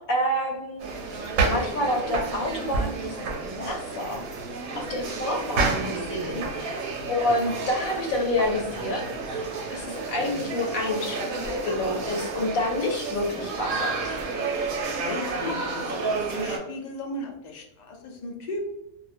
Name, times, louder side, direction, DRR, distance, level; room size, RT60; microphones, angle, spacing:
voice 1, 0.1-4.2 4.8-6.8 7.1-9.1 9.3-14.2, left 1 dB, 85° left, 1 dB, 1.1 m, -28 dB
sound 1, 0.8-16.6, right 3 dB, 85° right, 1.1 m, -30 dB
voice 2, 15.0-18.7, left 2 dB, 65° left, 0 dB, 0.4 m, -36 dB
2.4 x 2.1 x 2.5 m, 0.82 s
omnidirectional pair, 1.4 m